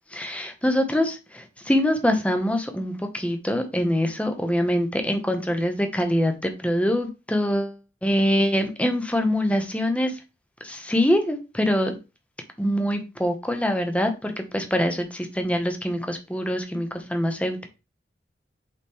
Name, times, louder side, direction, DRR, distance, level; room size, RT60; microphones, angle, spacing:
voice 1, 0.1-7.7 8.0-10.1 10.6-11.9 12.6-17.7, equal, 5° left, 6 dB, 0.9 m, -24 dB
6.8 x 4.9 x 3.7 m, 0.28 s
head